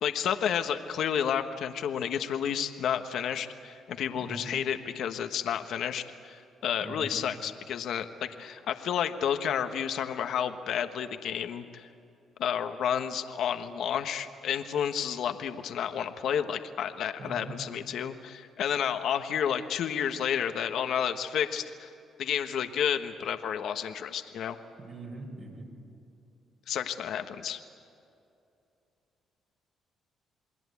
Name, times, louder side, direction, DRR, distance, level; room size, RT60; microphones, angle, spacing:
voice 1, 0.0-11.9 12.4-21.9 22.2-24.6 26.7-27.6, left 8 dB, 75° left, 7 dB, 1.3 m, -31 dB
voice 2, 4.1-4.5 6.8-7.1 17.2-17.5 24.8-25.7, right 3 dB, 55° right, 1 dB, 6.5 m, -42 dB
28.5 x 21.5 x 8.4 m, 2.6 s
cardioid pair, 90°, 0 cm